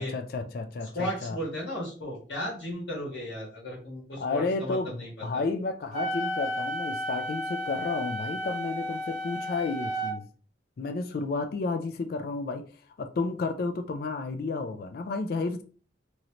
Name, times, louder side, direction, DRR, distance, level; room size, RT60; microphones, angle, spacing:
voice 1, 0.0-1.4 4.2-10.3 10.8-12.6 13.0-15.6, left 3 dB, 55° left, 0.3 m, -31 dB
voice 2, 0.9-5.4, left 1 dB, 70° left, 1.3 m, -35 dB
Wind instrument woodwind instrument, 5.9-10.1, equal, 40° right, 0.9 m, -33 dB
3.1 x 2.6 x 2.8 m
head